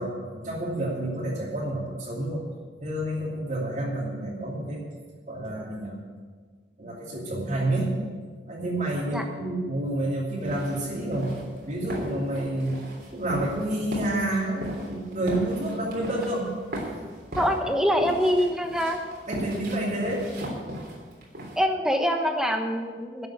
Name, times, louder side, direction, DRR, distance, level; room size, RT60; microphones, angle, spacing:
voice 1, 0.0-2.4 2.8-4.8 5.3-6.0 6.8-7.9 8.5-11.3 11.7-12.8 13.1-16.5 19.3-20.3, right 1 dB, 45° right, -4 dB, 2.7 m, -29 dB
sound 1, 10.4-21.6, right 1 dB, 65° right, 3.4 m, -38 dB
voice 2, 17.4-19.0 21.6-23.3, equal, 5° right, 4 dB, 1.1 m, -24 dB
11.5 x 7.7 x 8.6 m, 1.5 s
head